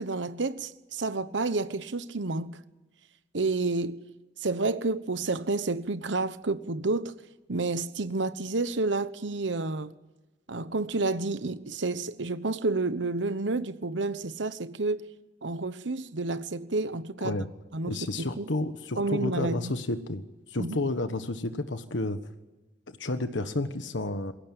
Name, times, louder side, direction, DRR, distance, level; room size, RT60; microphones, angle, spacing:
voice 1, 0.0-2.6 3.3-4.0 4.4-7.1 7.5-9.9 10.5-15.0 15.4-17.4 17.7-18.5 19.0-19.7 20.6-20.8, right 3 dB, 85° right, 1.1 m, -30 dB
voice 2, 17.9-20.2 20.5-22.2 22.9-24.3, left 2 dB, 85° left, 1.4 m, -31 dB
21.5 x 17.0 x 9.0 m
head